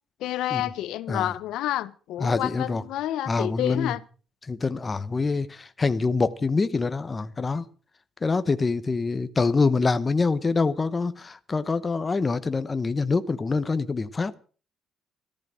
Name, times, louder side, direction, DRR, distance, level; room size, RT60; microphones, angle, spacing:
voice 1, 0.2-4.0, left 13 dB, 80° left, 0.9 m, -29 dB
voice 2, 2.2-2.8 3.3-3.9 4.5-7.7 8.2-14.4, left 4 dB, 20° left, 0.8 m, -25 dB
14.5 x 13.5 x 6.3 m
cardioid pair, 175°, 0 cm